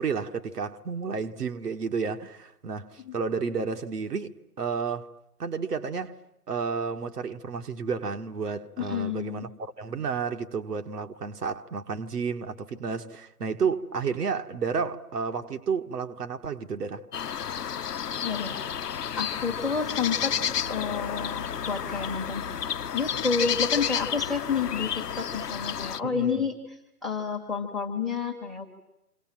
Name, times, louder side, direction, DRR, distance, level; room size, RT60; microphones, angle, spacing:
voice 1, 0.0-5.1 5.4-6.2 6.5-17.1 26.0-26.5, right 5 dB, 80° right, 1.8 m, -31 dB
voice 2, 8.8-9.4 18.2-18.6 19.2-20.4 20.7-22.4 22.9-26.6 27.0-28.6, left 5 dB, ahead, 1.3 m, -29 dB
sound 1, 17.1-26.0, left 8 dB, 90° left, 1.0 m, -31 dB
28.0 x 27.5 x 7.6 m
hypercardioid pair, 160°, 46 cm